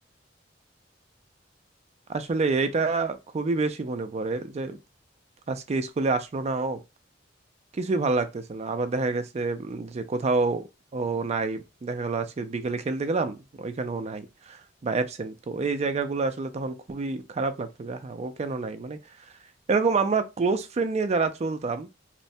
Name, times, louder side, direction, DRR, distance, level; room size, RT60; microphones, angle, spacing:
voice 1, 2.1-4.8 5.5-6.8 7.7-19.0 19.7-21.9, right 3 dB, 35° right, 0.4 m, -28 dB
3.1 x 2.1 x 2.6 m
head